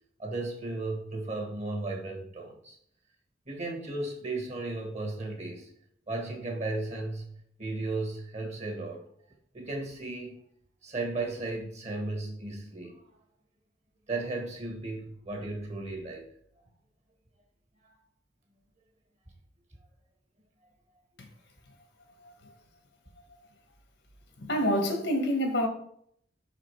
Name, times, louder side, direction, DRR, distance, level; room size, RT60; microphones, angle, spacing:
voice 1, 0.2-2.8 3.5-5.7 6.1-9.1 9.5-10.4 10.8-13.0 14.1-16.3 17.8-18.0, right 2 dB, 40° right, 1.7 m, -35 dB
voice 2, 24.5-25.7, equal, 75° left, 1.5 m, -26 dB
6.0 x 5.0 x 4.7 m
head